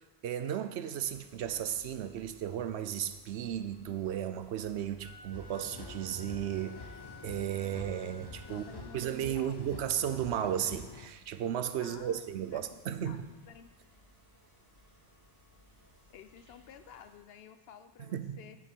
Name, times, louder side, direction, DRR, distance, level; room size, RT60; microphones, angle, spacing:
voice 1, 0.2-6.9 7.2-8.6 8.9-13.2 18.1-18.4, right 10 dB, 85° right, 11 dB, 0.9 m, -34 dB
sound 1, 1.0-17.2, equal, 15° right, 2.5 m, -62 dB
Wind instrument woodwind instrument, 5.0-9.3, left 1 dB, 5° left, 2.2 m, -55 dB
sound 2, 5.3-11.1, left 4 dB, 30° left, 0.5 m, -48 dB
voice 2, 8.5-9.8 11.8-13.2 13.5-13.7 16.1-18.6, left 7 dB, 65° left, 10 dB, 0.8 m, -52 dB
9.3 x 8.8 x 4.5 m, 1.2 s
omnidirectional pair, 1.1 m